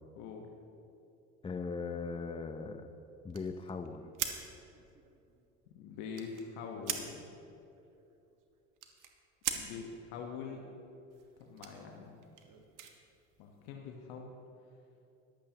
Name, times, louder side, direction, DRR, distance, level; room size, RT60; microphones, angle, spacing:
voice 1, 0.2-0.5 5.7-7.3 9.5-10.6 11.4-12.2 13.4-14.3, left 5 dB, 70° left, 1 dB, 1.2 m, -44 dB
voice 2, 1.4-2.9 3.2-4.1, left 4 dB, 15° left, 8 dB, 0.7 m, -39 dB
sound 1, 3.3-6.5 6.8-7.1 7.4-9.7 11.1-13.7, right 9 dB, 50° right, 1.3 m, -42 dB
22.0 x 8.6 x 2.9 m, 2.7 s
hypercardioid pair, 75°, 39 cm